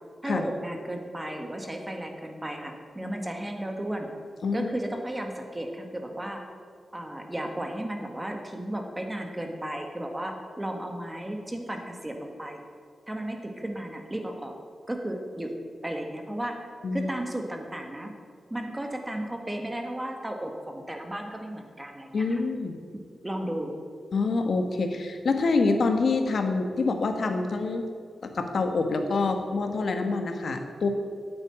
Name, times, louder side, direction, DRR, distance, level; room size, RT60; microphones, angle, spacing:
voice 1, 0.2-4.1 4.5-6.4 6.9-12.6 13.1-14.5 14.9-15.5 15.8-16.6 16.9-18.1 18.5-22.4 23.2-23.8, right 1 dB, 15° right, 3 dB, 1.7 m, -34 dB
voice 2, 22.1-22.8 24.1-27.8 28.2-30.9, left 3 dB, 60° left, 6 dB, 1.4 m, -26 dB
9.6 x 8.7 x 9.0 m, 2.1 s
wide cardioid pair, 115°, 0 cm